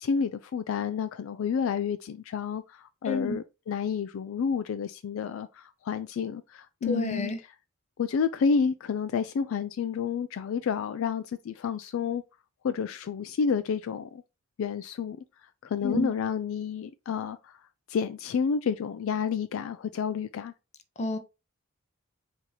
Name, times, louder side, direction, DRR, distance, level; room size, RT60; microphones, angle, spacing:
voice 1, 0.0-7.3 8.0-12.2 12.6-14.2 14.6-15.2 15.6-17.6 17.9-20.5, left 6 dB, 65° left, 0.3 m, -30 dB
voice 2, 3.0-3.4 6.8-7.4 15.8-16.1 21.0-21.2, left 1 dB, 30° left, 0.7 m, -29 dB
4.5 x 2.8 x 3.9 m
head